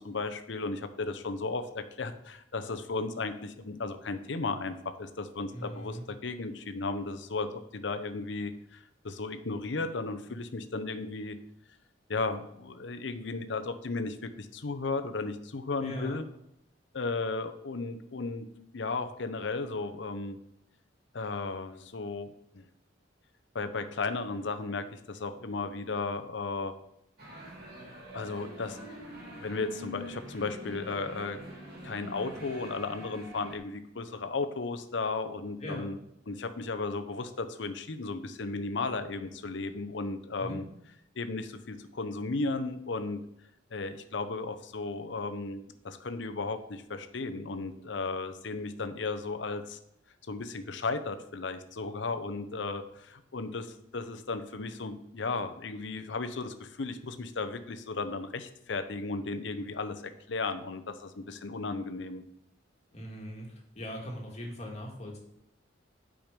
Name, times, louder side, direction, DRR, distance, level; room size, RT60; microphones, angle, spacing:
voice 1, 0.0-11.4 12.1-16.2 16.9-18.5 18.7-20.4 21.1-22.6 23.5-26.7 28.1-28.8 29.4-31.4 31.8-36.0 36.3-40.6 41.2-43.2 43.7-49.8 50.3-53.7 53.9-62.2, left 3 dB, 65° left, 9 dB, 0.7 m, -35 dB
voice 2, 5.5-6.0 15.8-16.2 35.6-35.9 40.4-40.6 62.9-65.2, equal, 35° left, 0 dB, 1.9 m, -40 dB
sound 1, 27.2-33.6, equal, 55° right, 2.3 m, -45 dB
9.0 x 5.1 x 5.2 m, 0.78 s
head